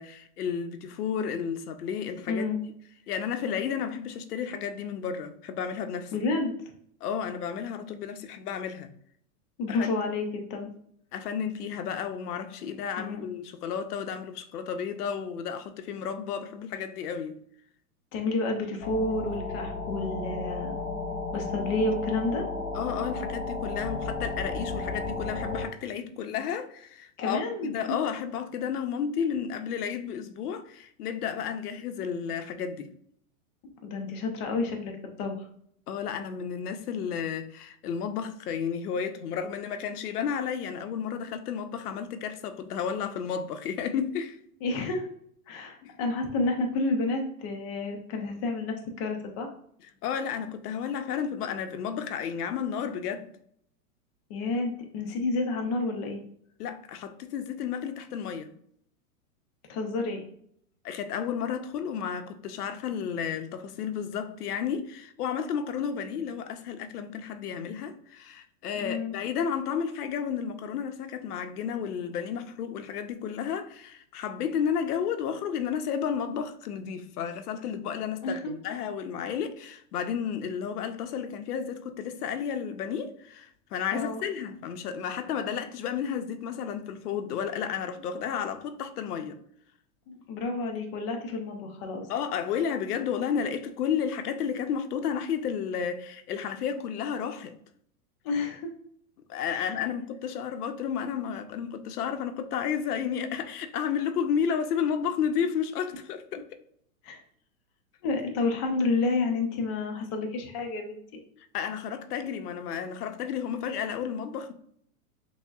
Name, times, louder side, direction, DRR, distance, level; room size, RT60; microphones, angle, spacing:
voice 1, 0.0-2.4 3.1-6.1 7.0-8.9 9.8-9.9 11.1-17.4 22.7-32.9 35.9-44.4 45.8-46.0 50.0-53.3 56.6-58.5 60.8-89.4 92.1-97.5 99.3-106.4 111.5-114.5, left 7 dB, 85° left, 0.6 m, -32 dB
voice 2, 2.3-2.6 6.1-6.5 9.6-10.7 13.0-13.3 18.1-20.7 21.3-22.4 27.2-27.7 33.8-35.4 44.6-45.1 45.5-49.5 54.3-56.2 59.7-60.2 68.8-69.1 78.2-78.5 83.9-84.2 90.1-92.1 98.2-98.7 99.5-99.7 107.0-107.2 108.0-111.0, left 3 dB, 25° left, 0.3 m, -30 dB
sound 1, 18.8-25.7, left 3 dB, 40° left, 0.8 m, -33 dB
5.9 x 2.1 x 2.3 m
hypercardioid pair, 130°, 45 cm